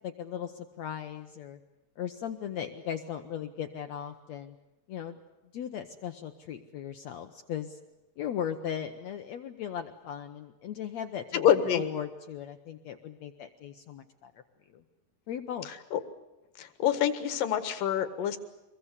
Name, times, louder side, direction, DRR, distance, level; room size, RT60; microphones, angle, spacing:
voice 1, 0.0-1.6 2.0-4.6 4.9-5.2 5.5-7.8 8.2-14.3 14.7-14.8 15.3-15.7, left 9 dB, 65° left, 6 dB, 2.0 m, -37 dB
voice 2, 11.3-11.8 15.9-16.0 16.6-18.4, left 9 dB, 85° left, 11 dB, 3.3 m, -26 dB
25.0 x 22.0 x 8.2 m, 0.99 s
omnidirectional pair, 3.8 m